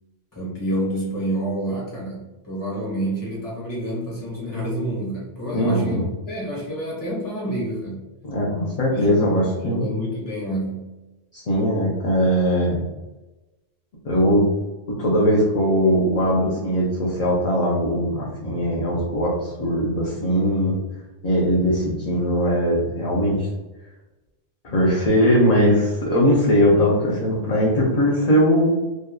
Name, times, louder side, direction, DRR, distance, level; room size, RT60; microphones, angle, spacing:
voice 1, 0.3-8.0 8.9-10.9, right 1 dB, 20° left, -6 dB, 1.1 m, -28 dB
voice 2, 5.5-6.1 8.2-9.9 11.3-12.8 14.0-14.5 15.0-20.8 21.2-23.5 24.6-28.7, equal, 50° left, -5 dB, 0.5 m, -20 dB
2.7 x 2.2 x 2.3 m, 1.1 s
omnidirectional pair, 1.1 m